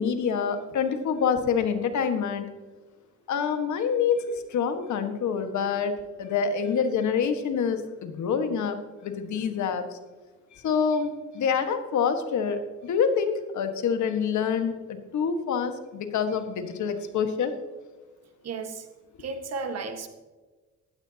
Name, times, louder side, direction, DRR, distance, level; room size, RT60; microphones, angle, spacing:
voice 1, 0.0-2.5 3.3-8.8 9.0-10.0 10.5-17.5, left 6 dB, 70° left, 7 dB, 1.6 m, -26 dB
voice 2, 18.4-18.9 19.2-20.1, right 4 dB, 55° right, 7 dB, 1.6 m, -33 dB
16.0 x 13.5 x 2.9 m, 1.3 s
cardioid pair, 90°, 30 cm